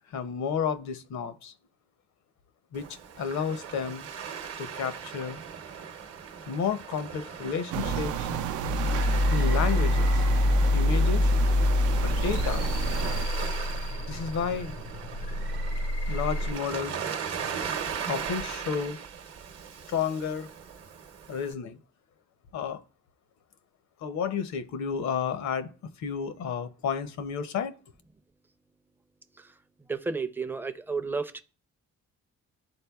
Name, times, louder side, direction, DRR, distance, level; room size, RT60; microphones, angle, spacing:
voice 1, 0.1-1.5 2.7-2.9 3.2-4.1 4.6-5.4 6.5-8.3 9.3-10.2 10.7-11.3 12.0-12.7 14.1-14.8 16.1-17.0 18.1-19.0 19.9-20.5 21.3-21.8 22.5-22.8 24.0-25.7 26.0-27.7, left 6 dB, 65° left, 0.7 m, -31 dB
Waves surf, 2.7-21.5, right 7 dB, 55° right, 0.8 m, -39 dB
sound 1, 7.7-13.3, right 10 dB, 80° right, 0.5 m, -33 dB
sound 2, 7.8-16.5, left 1 dB, 85° left, 1.2 m, -26 dB
voice 2, 29.9-31.4, right 4 dB, 5° right, 0.4 m, -32 dB
11.5 x 3.9 x 2.3 m
cardioid pair, 90°, 30 cm